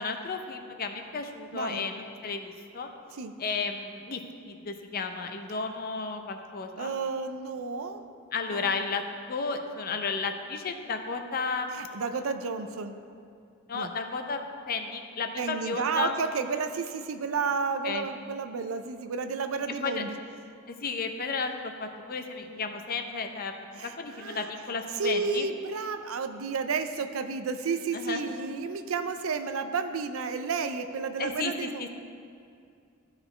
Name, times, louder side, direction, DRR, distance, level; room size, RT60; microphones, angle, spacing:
voice 1, 0.0-2.9 3.4-4.2 4.5-6.9 8.3-9.0 9.3-11.7 13.7-16.1 17.8-18.1 19.8-20.0 20.7-25.5 27.9-28.2 31.2-31.7, left 4 dB, 45° left, 5 dB, 0.6 m, -33 dB
voice 2, 1.5-1.9 3.1-3.3 6.8-8.0 8.5-8.7 11.7-13.0 13.7-13.9 15.4-20.2 23.7-24.5 24.9-31.9, right 5 dB, 75° right, 9 dB, 0.5 m, -32 dB
14.0 x 4.8 x 3.2 m, 2.4 s
head